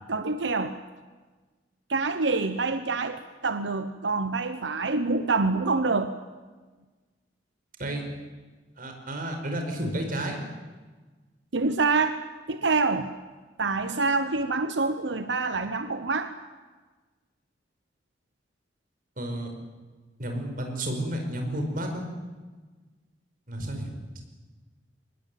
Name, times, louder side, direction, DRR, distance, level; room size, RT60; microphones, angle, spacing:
voice 1, 0.1-0.8 1.9-6.1 11.5-12.2 12.5-13.1 13.6-16.3, right 3 dB, 90° right, 9 dB, 1.0 m, -26 dB
voice 2, 8.8-10.4 19.2-19.5 20.2-22.0 23.5-23.9, right 1 dB, 50° right, 4 dB, 5.3 m, -31 dB
23.0 x 20.0 x 9.3 m, 1.3 s
head